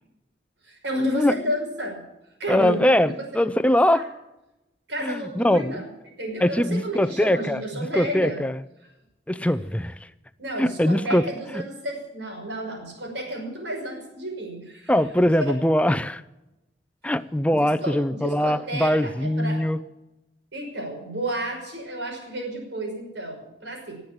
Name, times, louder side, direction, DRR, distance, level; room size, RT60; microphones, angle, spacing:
voice 1, 0.6-2.0 2.4-3.2 3.9-4.1 4.9-5.9 6.2-8.5 10.4-14.9 15.4-15.5 17.5-19.7 20.5-24.0, right 1 dB, 80° right, 1 dB, 5.7 m, -31 dB
voice 2, 2.5-4.0 5.0-5.8 6.4-8.6 9.3-10.1 10.6-11.2 11.5-11.6 14.9-16.2 17.0-19.8, left 1 dB, 5° left, 11 dB, 0.5 m, -22 dB
18.5 x 8.0 x 8.8 m, 0.94 s
head